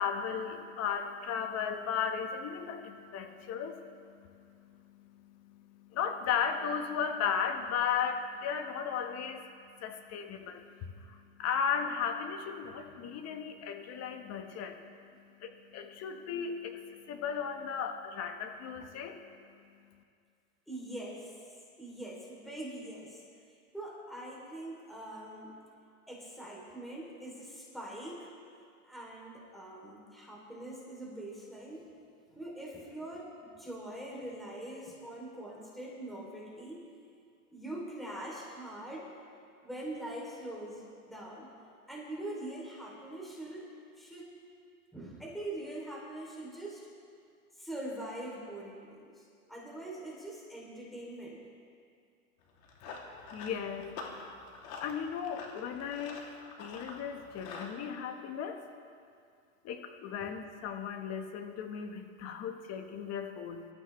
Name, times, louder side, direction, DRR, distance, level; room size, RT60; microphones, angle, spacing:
voice 1, 0.0-9.4 9.8-14.8 15.4-19.2 53.3-54.4 54.8-56.3 56.6-58.6 59.6-63.7, left 7 dB, 35° left, 5 dB, 1.4 m, -36 dB
voice 2, 20.7-21.3 21.8-23.2 23.7-25.6 26.1-28.3 28.8-31.9 32.3-36.8 37.5-39.1 39.6-41.5 41.9-43.7 43.9-44.3 44.9-46.9 47.5-51.4 60.2-60.4, right 1 dB, ahead, -4 dB, 3.2 m, -43 dB
Run, 52.4-57.7, left 4 dB, 65° left, 2.9 m, -46 dB
25.0 x 13.5 x 3.3 m, 2.3 s
hypercardioid pair, 120°, 44 cm